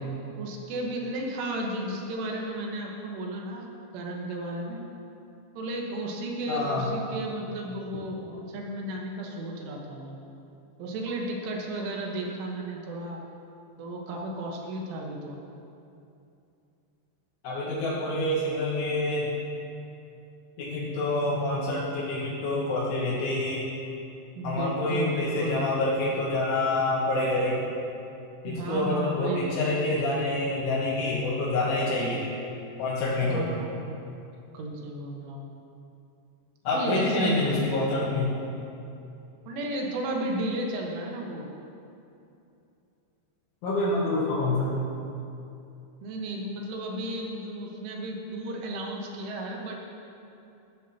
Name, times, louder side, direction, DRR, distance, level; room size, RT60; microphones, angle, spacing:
voice 1, 0.4-3.7 3.9-4.8 5.6-10.2 10.8-13.2 13.8-15.4 24.4-25.6 28.5-29.6 33.2-33.8 34.5-35.4 36.7-37.6 39.5-41.5 46.0-49.8, right 1 dB, 85° right, 0 dB, 3.7 m, -33 dB
voice 2, 6.5-6.9 17.4-19.3 20.6-23.7 24.4-27.7 28.4-32.3 32.8-33.5 36.7-38.4 43.6-44.8, left 2 dB, 80° left, -7 dB, 3.9 m, -27 dB
13.0 x 12.5 x 2.8 m, 2.7 s
omnidirectional pair, 5.5 m